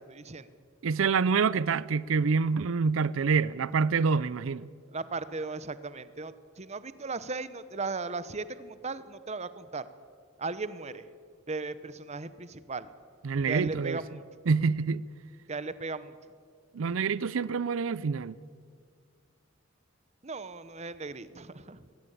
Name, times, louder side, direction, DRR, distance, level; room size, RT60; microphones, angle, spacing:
voice 1, 0.1-0.5 4.9-9.9 10.4-11.1 11.5-12.9 13.5-14.2 15.5-16.1 20.2-21.9, right 3 dB, 35° right, 0.9 m, -37 dB
voice 2, 0.8-4.7 13.2-14.0 14.5-15.0 16.7-18.4, right 5 dB, 90° right, 0.5 m, -26 dB
21.0 x 17.0 x 8.9 m
head